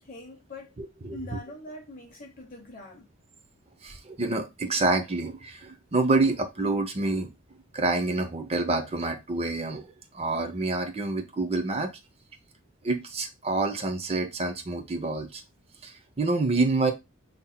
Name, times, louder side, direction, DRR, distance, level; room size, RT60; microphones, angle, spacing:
voice 1, 0.0-0.7 1.1-3.1, left 2 dB, 40° left, 1.1 m, -43 dB
voice 2, 0.8-1.2 3.8-7.3 7.7-11.9 12.8-15.4 15.8-16.9, right 3 dB, 30° right, 0.6 m, -27 dB
5.7 x 2.7 x 2.2 m
head